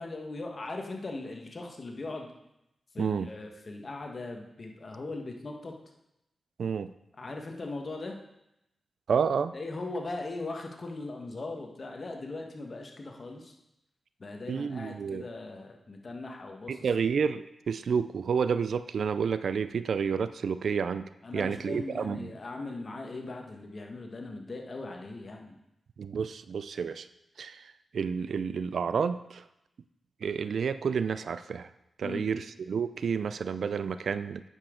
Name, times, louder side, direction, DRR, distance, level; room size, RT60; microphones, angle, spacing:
voice 1, 0.0-2.3 2.9-5.7 7.2-8.2 9.5-13.5 14.2-16.9 21.2-25.6 32.0-32.3, left 2 dB, 50° left, 2 dB, 1.5 m, -39 dB
voice 2, 3.0-3.3 6.6-6.9 9.1-9.5 14.5-15.2 16.7-22.3 26.0-27.1 27.4-29.4 30.2-31.7 32.0-34.5, right 6 dB, 75° right, 13 dB, 0.3 m, -30 dB
8.8 x 7.0 x 3.8 m, 0.87 s
cardioid pair, 50°, 0 cm